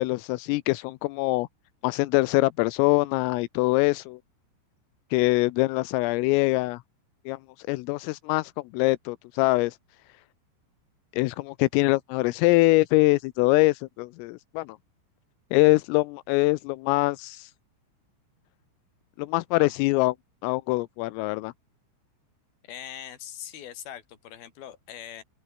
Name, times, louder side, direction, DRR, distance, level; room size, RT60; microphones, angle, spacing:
voice 1, 0.0-1.5 1.8-4.2 5.1-6.8 7.3-7.4 7.7-9.8 11.1-14.8 15.5-17.5 19.2-20.2 20.4-21.5, left 22 dB, 85° left, 3.3 m, -23 dB
voice 2, 22.6-25.2, left 10 dB, 55° left, 4.1 m, -41 dB
open air
omnidirectional pair, 5.9 m